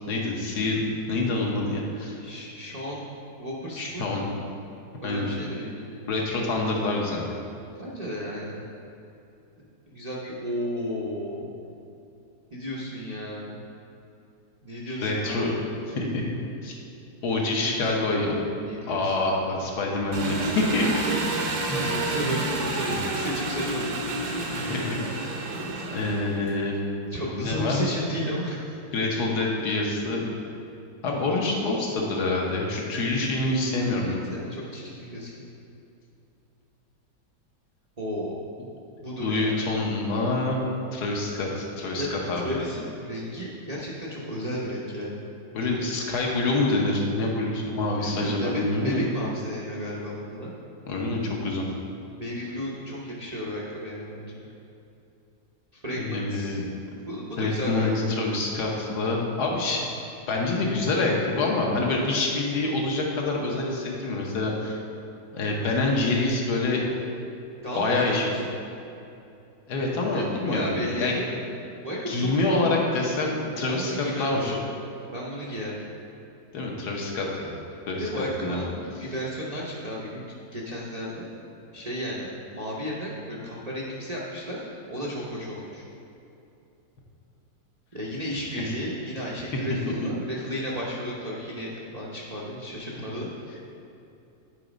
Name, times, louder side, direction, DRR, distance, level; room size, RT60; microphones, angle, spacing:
voice 1, 0.1-0.8 1.1-2.1 3.8-4.3 5.0-5.3 6.1-7.3 14.9-15.6 15.9-16.2 16.6-16.8 17.2-18.4 18.9-21.1 21.7-21.8 22.9-23.0 24.6-25.3 25.9-27.8 28.9-30.2 31.0-34.2 39.2-40.6 40.9-42.6 45.5-49.0 50.9-51.7 55.9-56.6 57.4-59.9 60.3-64.8 65.3-66.8 67.7-68.4 69.7-71.2 72.1-73.9 74.2-74.6 76.5-77.5 77.9-78.1 78.4-78.6 88.6-88.7, left 2 dB, 65° left, -1 dB, 1.5 m, -26 dB
voice 2, 2.2-3.0 3.4-4.3 5.0-6.0 7.8-8.6 9.9-11.6 12.5-13.6 14.6-15.8 17.4-19.6 21.0-24.2 27.1-28.8 34.0-35.5 38.0-38.4 39.0-39.5 42.0-42.1 42.4-45.2 45.6-45.7 48.0-50.5 52.1-54.5 55.7-56.6 57.1-58.2 67.6-68.4 70.1-71.4 71.8-72.3 73.7-74.8 75.1-75.9 77.9-81.3 81.7-84.6 84.9-85.9 87.9-93.3, equal, 40° right, -6 dB, 0.5 m, -33 dB
Engine, 20.1-26.6, right 2 dB, 80° right, 1.7 m, -30 dB
9.4 x 4.1 x 5.0 m, 2.7 s
omnidirectional pair, 2.0 m